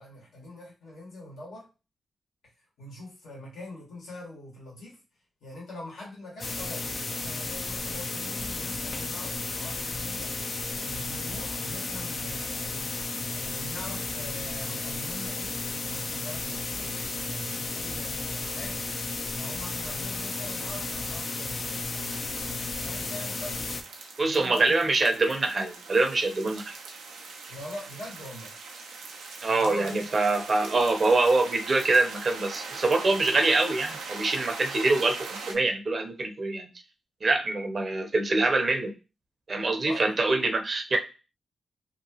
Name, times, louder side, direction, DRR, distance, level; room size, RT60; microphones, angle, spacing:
voice 1, 0.0-1.7 2.8-5.0 5.4-10.3 10.8-23.7 24.2-24.9 27.5-28.5 29.4-30.1 39.8-40.4, left 1 dB, 80° left, 1.4 m, -43 dB
sound 1, 6.4-23.8, left 3 dB, 60° left, 0.5 m, -33 dB
sound 2, 19.6-35.5, right 4 dB, 90° right, 0.5 m, -42 dB
voice 2, 24.2-26.7 29.4-36.7 37.2-38.9 39.5-41.0, right 3 dB, 55° right, 0.7 m, -25 dB
2.9 x 2.4 x 2.8 m
supercardioid pair, 40°, 0 cm